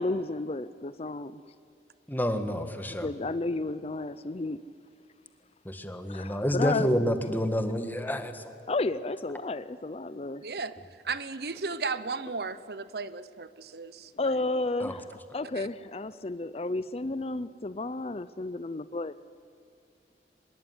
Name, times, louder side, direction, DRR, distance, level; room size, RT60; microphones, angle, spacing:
voice 1, 0.0-1.4 3.0-4.6 6.1-6.9 8.7-10.4 14.2-15.0 15.3-19.1, left 2 dB, 35° left, 0.5 m, -32 dB
voice 2, 2.1-3.1 5.6-8.5 14.8-15.0, equal, 10° left, 1.7 m, -29 dB
voice 3, 10.4-10.8 11.0-14.3 15.5-15.7, right 4 dB, 60° right, 0.9 m, -35 dB
24.0 x 21.0 x 9.6 m
head